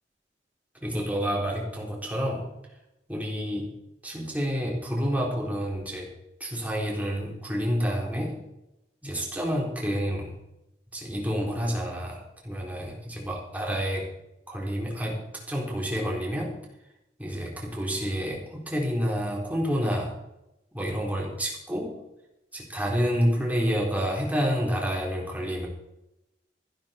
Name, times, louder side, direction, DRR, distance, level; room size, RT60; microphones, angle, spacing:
voice 1, 0.8-2.5 3.1-3.7 4.0-6.1 6.4-8.4 9.0-10.3 10.9-14.1 14.5-16.5 17.2-20.2 20.7-22.0 22.5-25.7, equal, 10° right, -2 dB, 4.0 m, -29 dB
14.5 x 12.5 x 4.5 m, 0.88 s
head